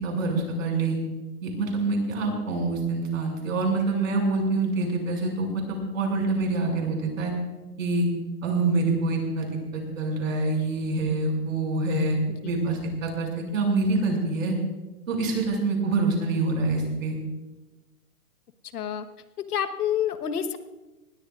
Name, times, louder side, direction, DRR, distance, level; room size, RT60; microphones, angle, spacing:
voice 1, 0.0-1.0 1.4-7.3 7.8-8.1 8.4-12.2 12.4-14.6 15.1-17.2, right 3 dB, 60° right, 1 dB, 6.3 m, -26 dB
voice 2, 18.7-19.1 19.5-20.6, left 9 dB, 75° left, 9 dB, 1.4 m, -27 dB
23.5 x 19.5 x 2.5 m, 1.1 s
hypercardioid pair, 170°, 46 cm